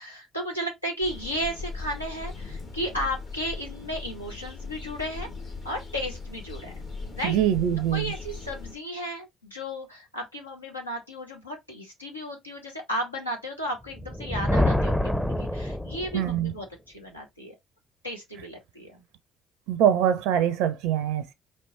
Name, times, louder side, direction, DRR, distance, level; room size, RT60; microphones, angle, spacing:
voice 1, 0.0-5.3 5.6-6.7 7.1-7.4 7.9-17.5 18.0-19.0, equal, 90° left, 0.9 m, -34 dB
sound 1, 1.0-8.8, left 4 dB, 50° left, 1.5 m, -39 dB
voice 2, 7.2-8.1 16.1-16.5 19.7-21.3, right 10 dB, 65° right, 0.4 m, -23 dB
Thunder, 13.9-16.5, left 1 dB, 5° left, 0.6 m, -26 dB
4.4 x 3.0 x 3.0 m
figure-of-eight pair, 50°, 0 cm